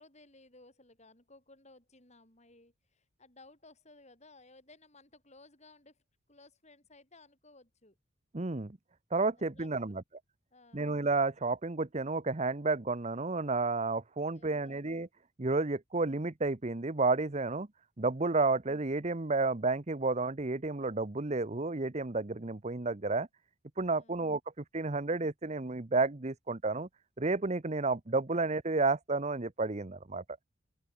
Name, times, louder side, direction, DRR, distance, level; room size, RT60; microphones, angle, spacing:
voice 1, 0.0-6.0 6.3-8.0 9.5-10.0 10.5-10.9 14.3-14.8 23.9-24.2, left 2 dB, 35° left, 6.9 m, -59 dB
voice 2, 8.3-8.8 9.1-10.0 10.7-15.1 15.4-17.7 18.0-23.3 23.8-26.9 27.2-30.2, right 3 dB, 35° right, 0.9 m, -31 dB
open air
head